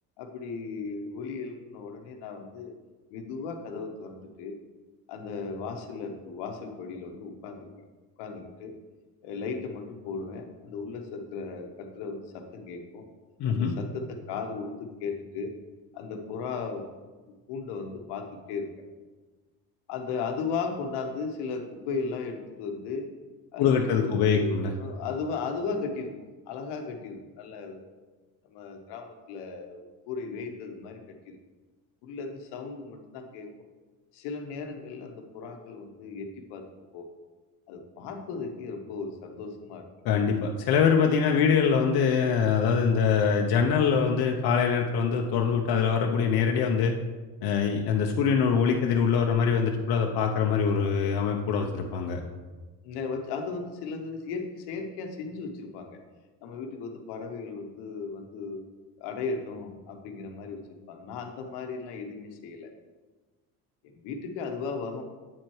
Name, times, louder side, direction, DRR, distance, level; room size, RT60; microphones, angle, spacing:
voice 1, 0.2-2.7 3.1-4.6 5.1-7.8 8.2-8.7 9.2-13.0 13.5-15.5 15.9-16.9 17.3-18.7 19.9-23.1 23.5-27.9 28.4-31.0 31.3-31.4 32.0-33.5 34.1-36.6 36.9-37.0 37.7-39.9 52.8-56.0 56.4-58.6 59.0-60.6 60.9-62.7 63.9-65.1, left 4 dB, 85° left, 4 dB, 1.1 m, -36 dB
voice 2, 13.4-13.7 23.6-24.7 40.0-46.9 47.4-52.2, left 6 dB, 65° left, 2 dB, 0.8 m, -24 dB
8.3 x 4.6 x 4.7 m, 1.3 s
supercardioid pair, 85°, 40 cm